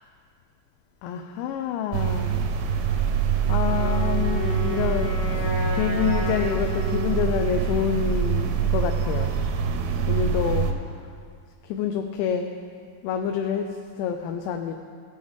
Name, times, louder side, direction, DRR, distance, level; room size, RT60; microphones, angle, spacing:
voice 1, 1.0-2.5 3.5-9.3 10.1-10.7 11.6-12.5 13.0-13.7 14.0-14.8, left 8 dB, 85° left, 4 dB, 2.7 m, -27 dB
sound 1, 1.9-10.7, right 6 dB, 85° right, 2.7 m, -25 dB
Wind instrument woodwind instrument, 3.6-7.6, right 3 dB, 55° left, 2.3 m, -33 dB
16.0 x 7.8 x 3.6 m, 2.2 s
omnidirectional pair, 5.3 m